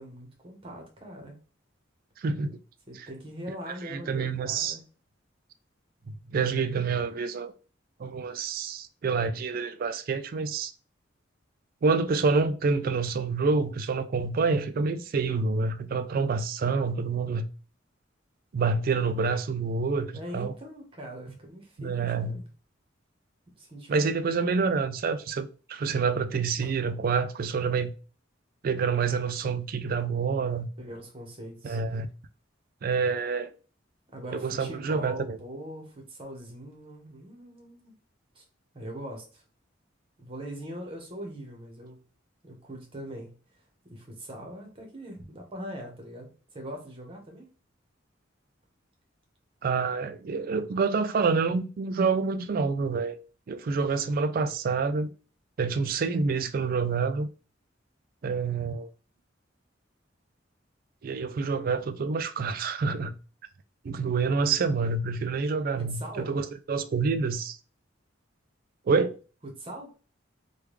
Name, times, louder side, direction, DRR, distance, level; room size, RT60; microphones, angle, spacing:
voice 1, 0.0-1.4 2.9-4.8 20.1-22.5 23.5-24.4 30.8-31.8 34.1-37.9 38.3-38.4 38.7-39.4 40.2-42.0 42.4-43.3 43.9-47.5 65.8-66.3 69.4-69.9, equal, 30° right, 1.0 m, -41 dB
voice 2, 2.2-2.6 3.0-3.1 3.9-4.8 6.1-7.5 8.0-10.7 11.8-17.5 18.5-20.5 21.8-22.4 23.9-27.9 28.6-30.7 31.6-32.1 32.8-33.5 34.3-35.4 49.6-53.2 53.5-55.1 55.6-57.3 58.2-58.9 61.0-63.2 63.8-67.6 68.9-69.2, right 4 dB, 50° right, 0.3 m, -27 dB
3.4 x 2.3 x 3.1 m
head